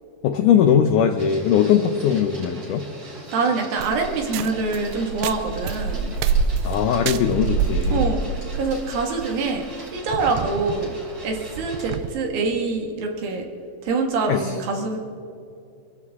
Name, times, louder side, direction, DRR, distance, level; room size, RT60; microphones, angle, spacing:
voice 1, 0.2-2.8 6.6-8.1 14.3-14.4, left 8 dB, 90° left, 6 dB, 1.8 m, -19 dB
Printer, 1.2-12.0, right 1 dB, 30° right, 3.2 m, -42 dB
voice 2, 3.1-6.1 7.9-9.6 9.9-10.9 11.2-13.5 13.8-15.1, right 3 dB, 65° right, 2 dB, 3.4 m, -25 dB
sound 1, 3.8-12.1, right 5 dB, 85° right, 2.7 m, -27 dB
25.5 x 14.5 x 3.6 m, 2.6 s
omnidirectional pair, 4.6 m